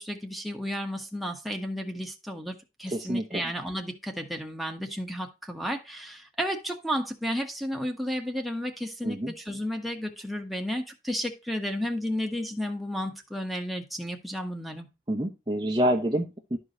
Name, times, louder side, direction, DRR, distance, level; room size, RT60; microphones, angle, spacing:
voice 1, 0.0-14.9, equal, ahead, 1.3 m, -33 dB
voice 2, 2.9-3.4 9.0-9.3 15.1-16.6, equal, 20° right, 0.9 m, -27 dB
12.5 x 4.9 x 2.7 m
head